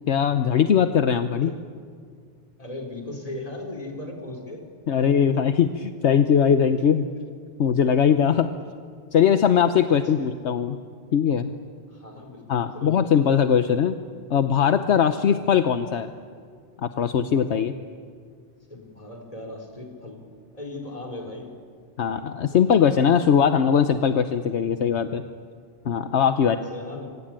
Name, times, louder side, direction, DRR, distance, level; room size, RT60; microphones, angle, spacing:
voice 1, 0.1-1.5 4.9-7.0 7.6-8.5 9.1-10.8 11.1-11.5 12.5-14.0 14.3-16.1 16.8-17.7 22.0-25.2 25.8-26.6, left 8 dB, 70° left, 9 dB, 1.2 m, -20 dB
voice 2, 2.6-4.7 5.0-5.5 9.9-10.3 11.9-13.1 15.2-15.5 18.7-20.3 20.5-21.6 26.4-27.2, left 2 dB, 30° left, 1 dB, 4.2 m, -38 dB
27.0 x 24.5 x 8.9 m, 2.1 s
omnidirectional pair, 1.2 m